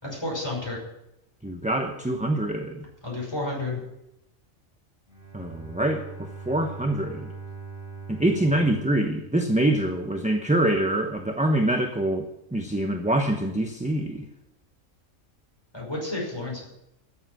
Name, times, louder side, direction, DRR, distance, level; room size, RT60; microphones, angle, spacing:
voice 1, 0.0-0.8 3.0-3.8 15.7-16.6, left 2 dB, 20° left, -3 dB, 5.8 m, -31 dB
voice 2, 1.4-2.8 5.3-7.3 8.1-14.2, right 1 dB, 5° right, 4 dB, 0.8 m, -25 dB
Bowed string instrument, 5.1-9.9, right 4 dB, 25° right, 4.6 m, -42 dB
14.0 x 7.5 x 7.7 m, 0.86 s
omnidirectional pair, 1.4 m